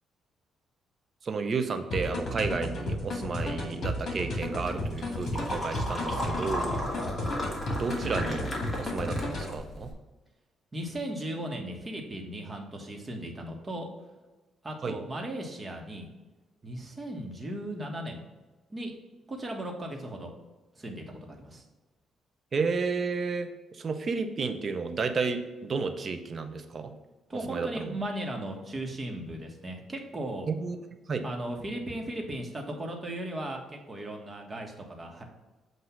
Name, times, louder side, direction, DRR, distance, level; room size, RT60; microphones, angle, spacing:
voice 1, 1.2-6.8 7.8-8.5 8.8-9.9 14.8-15.0 22.5-26.9 27.5-27.9 30.5-30.8 31.1-31.2, right 4 dB, 45° right, 7 dB, 0.7 m, -32 dB
sound 1, 1.9-9.6, left 1 dB, 55° left, 2.0 m, -33 dB
sound 2, 4.6-9.9, left 1 dB, 15° left, 1.8 m, -35 dB
voice 2, 10.7-13.9 14.6-16.1 16.6-18.2 18.7-18.9 19.3-20.3 20.7-21.6 27.3-30.5 31.2-35.2, right 1 dB, 25° right, 1 dB, 1.3 m, -37 dB
7.9 x 2.7 x 5.7 m, 1.2 s
cardioid pair, 90°, 0 cm